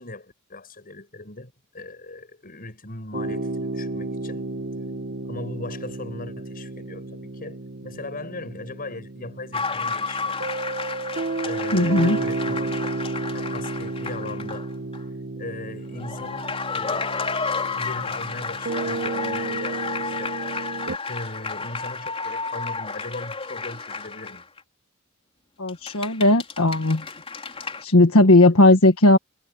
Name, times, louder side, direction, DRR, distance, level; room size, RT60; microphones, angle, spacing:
voice 1, 0.0-4.5 5.2-10.4 11.4-13.0 13.3-14.7 15.4-20.3 21.1-24.5, left 2 dB, 45° left, 7.5 m, -38 dB
sound 1, 3.1-21.0, right 3 dB, 50° right, 1.0 m, -32 dB
sound 2, 9.5-14.7 14.9-15.0 15.9-24.6 25.7-27.8, left 4 dB, 25° left, 4.5 m, -31 dB
voice 2, 11.7-12.2 25.6-27.0 27.8-29.2, left 2 dB, 75° left, 1.6 m, -16 dB
head